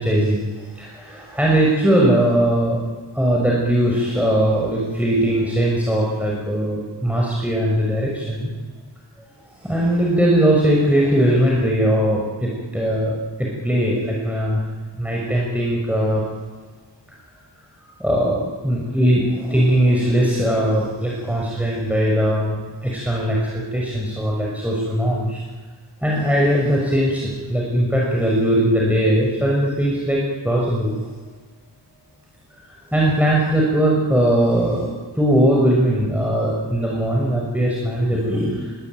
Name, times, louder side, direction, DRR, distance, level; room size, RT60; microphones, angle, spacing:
voice 1, 0.0-2.8 3.1-8.5 9.6-14.6 15.0-16.2 18.0-25.4 26.0-30.9 32.6-34.9 35.1-38.8, right 1 dB, 5° right, -3 dB, 5.9 m, -20 dB
25.0 x 24.5 x 9.5 m, 1.4 s
wide cardioid pair, 85°, 44 cm